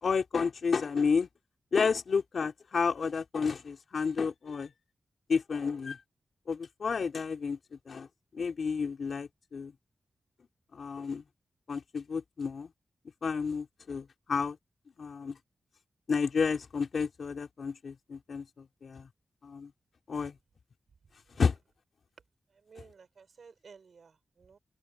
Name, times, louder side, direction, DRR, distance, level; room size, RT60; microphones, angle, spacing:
voice 1, 0.0-1.3 1.7-4.7 5.3-6.0 6.5-7.6 7.9-8.1 8.3-9.7 10.7-11.2 11.7-12.7 13.2-14.6 15.0-15.3 16.1-18.4 18.8-19.1 19.4-19.7 20.1-20.3 21.4-21.5, left 5 dB, 65° left, 2.9 m, -31 dB
voice 2, 22.6-24.6, right 5 dB, 65° right, 5.8 m, -55 dB
open air
wide cardioid pair, 105°, 0 cm